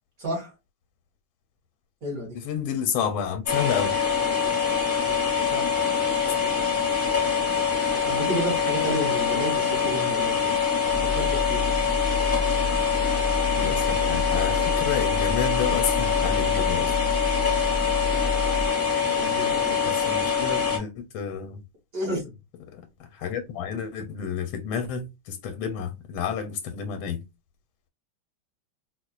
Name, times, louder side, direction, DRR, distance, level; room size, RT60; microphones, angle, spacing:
voice 1, 0.2-0.5 2.0-2.4 5.4-5.7 8.0-10.6 10.9-11.6 19.2-19.8 21.9-22.3, equal, 45° right, 1.8 m, -31 dB
voice 2, 2.3-4.0 13.6-16.9 19.9-21.6 22.7-27.2, left 7 dB, 90° left, 1.4 m, -30 dB
sound 1, 3.5-20.8, left 6 dB, 15° left, 0.5 m, -24 dB
sound 2, 10.9-18.7, left 3 dB, 80° right, 0.4 m, -30 dB
4.2 x 2.3 x 2.3 m
omnidirectional pair, 2.2 m